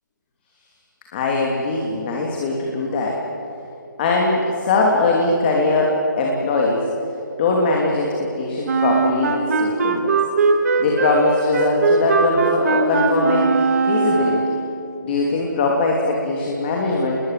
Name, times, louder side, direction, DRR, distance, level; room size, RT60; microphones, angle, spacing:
voice 1, 1.1-3.2 4.0-6.9 7.4-10.2 10.8-14.6 15.0-17.2, left 3 dB, 30° left, -1 dB, 3.0 m, -21 dB
Wind instrument woodwind instrument, 8.6-14.7, right 4 dB, 50° right, 2.8 m, -20 dB
29.0 x 21.0 x 7.7 m, 2.9 s
hypercardioid pair, 160°, 10 cm